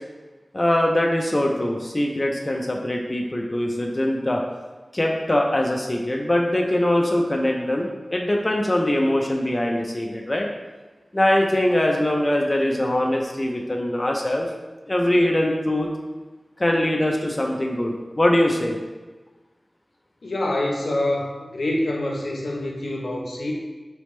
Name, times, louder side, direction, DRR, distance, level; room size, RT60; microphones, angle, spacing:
voice 1, 0.5-4.4 4.9-10.5 11.1-14.5 14.9-15.9 16.6-18.8, left 1 dB, 30° left, 0 dB, 0.5 m, -22 dB
voice 2, 20.2-23.5, left 1 dB, 90° left, -2 dB, 0.7 m, -26 dB
4.1 x 3.4 x 3.1 m, 1.2 s
wide cardioid pair, 70°, 0 cm